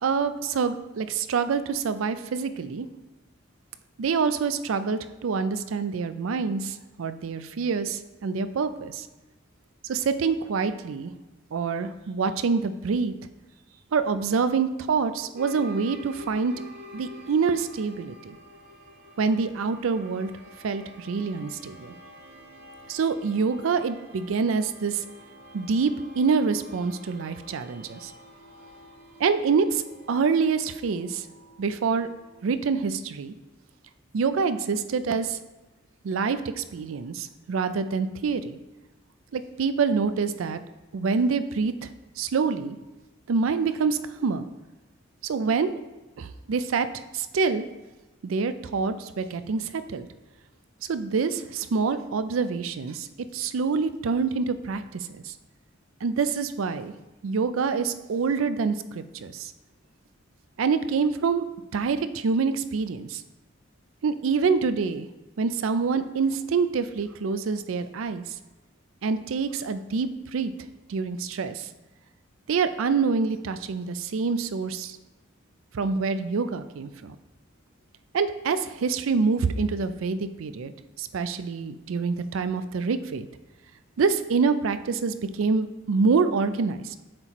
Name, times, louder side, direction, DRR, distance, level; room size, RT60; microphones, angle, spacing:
voice 1, 0.0-2.9 4.0-9.1 9.8-11.1 11.5-13.1 13.9-16.5 16.9-18.4 19.2-20.3 20.6-21.9 22.9-25.0 25.5-28.1 29.2-29.8 30.1-31.3 31.6-32.1 32.4-33.3 34.1-35.4 36.0-38.6 39.3-40.6 40.9-41.9 42.2-42.8 43.3-44.5 45.2-45.7 46.2-46.9 47.1-47.6 48.2-50.1 50.9-53.1 53.3-55.3 56.0-56.9 57.2-59.5 60.6-61.5 61.7-63.2 64.0-65.1 65.4-68.4 69.0-70.5 70.9-71.7 72.5-75.0 75.7-77.2 78.1-80.7 81.0-83.3 84.0-87.0, right 5 dB, 85° right, 11 dB, 0.4 m, -26 dB
sound 1, 15.4-32.5, left 1 dB, 45° right, 0.7 m, -48 dB
7.6 x 3.0 x 4.3 m, 1.1 s
head